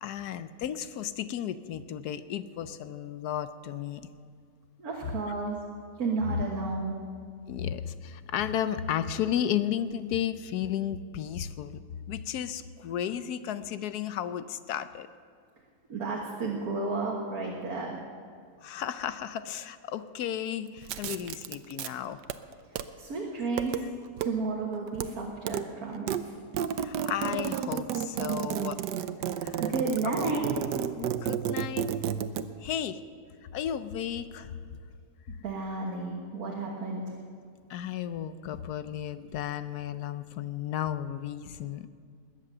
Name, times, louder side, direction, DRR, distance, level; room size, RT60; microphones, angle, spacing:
voice 1, 0.0-4.0 5.0-5.1 6.3-6.4 7.5-11.8 12.1-15.1 18.6-22.2 26.8-28.8 29.4-29.6 30.0-30.1 31.0-31.9 32.6-33.0 33.5-34.5 37.7-41.9, left 10 dB, 70° left, 12 dB, 1.2 m, -33 dB
voice 2, 4.8-5.6 6.0-7.0 15.9-18.0 23.0-23.7 24.2-26.3 29.6-30.4 35.4-37.2, right 3 dB, 60° right, -2 dB, 1.9 m, -32 dB
sound 1, 20.8-21.9 22.2-22.8 23.4-23.8 24.2-24.3 24.6-25.1 25.4-25.7 25.9-32.4, right 9 dB, 80° right, 1.3 m, -32 dB
21.0 x 8.8 x 6.7 m, 2.1 s
omnidirectional pair, 1.8 m